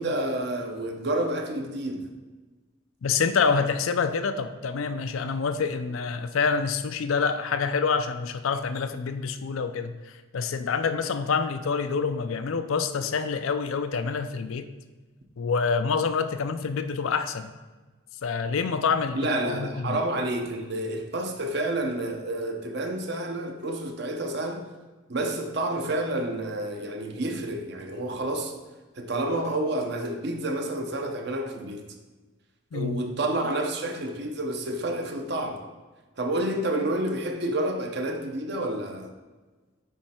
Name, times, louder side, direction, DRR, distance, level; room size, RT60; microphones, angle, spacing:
voice 1, 0.0-2.1 19.1-24.7 25.1-28.5 29.0-31.8 32.7-35.6 36.2-39.1, right 1 dB, 55° right, 4 dB, 0.7 m, -29 dB
voice 2, 3.0-14.7 15.4-17.5 18.2-20.0 32.7-33.0, left 5 dB, 85° left, 10 dB, 0.5 m, -27 dB
9.2 x 3.2 x 4.3 m, 1.3 s
head